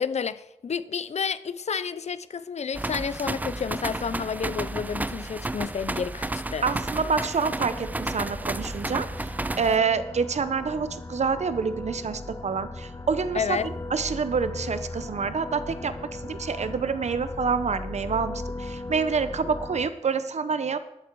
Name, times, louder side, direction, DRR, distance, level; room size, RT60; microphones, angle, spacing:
voice 1, 0.0-6.6 13.3-13.7, left 6 dB, 75° left, 0.5 m, -30 dB
sound 1, 2.7-9.8, right 2 dB, 15° right, 0.3 m, -32 dB
voice 2, 6.6-13.6 13.9-20.8, right 5 dB, 85° right, 0.8 m, -27 dB
sound 2, 7.2-19.9, left 2 dB, 30° left, 0.9 m, -38 dB
11.5 x 11.5 x 4.7 m
wide cardioid pair, 110°, 11 cm